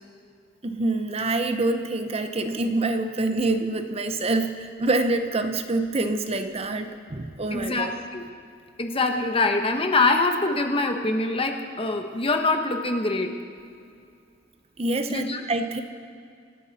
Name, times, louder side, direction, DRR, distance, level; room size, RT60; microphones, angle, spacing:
voice 1, 0.6-7.9 14.8-15.8, right 2 dB, 35° right, 8 dB, 0.7 m, -26 dB
voice 2, 7.5-8.2 8.8-13.3 15.1-15.4, left 3 dB, 30° left, 5 dB, 1.1 m, -24 dB
26.5 x 9.7 x 4.2 m, 2.3 s
head